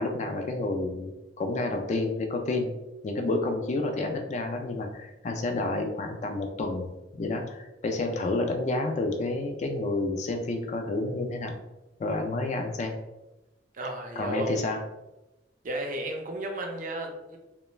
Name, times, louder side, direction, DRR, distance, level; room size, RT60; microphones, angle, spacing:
voice 1, 0.0-2.7 3.0-11.5 12.0-12.9 14.2-14.8, left 2 dB, 40° left, 4 dB, 0.3 m, -30 dB
voice 2, 13.7-14.6 15.6-17.4, right 1 dB, 45° right, 3 dB, 0.4 m, -33 dB
2.3 x 2.2 x 3.0 m, 0.97 s
head